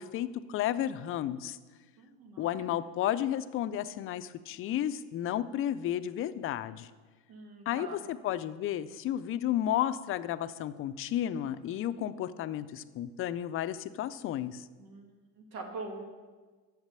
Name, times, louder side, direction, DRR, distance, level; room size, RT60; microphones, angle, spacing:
voice 1, 0.0-1.6 2.4-6.9 7.7-14.7, left 11 dB, 35° left, 13 dB, 0.4 m, -32 dB
voice 2, 2.0-2.5 7.3-8.1 14.8-16.0, right 3 dB, 90° right, 2 dB, 1.6 m, -44 dB
8.1 x 6.6 x 6.7 m, 1.4 s
supercardioid pair, 115°, 41 cm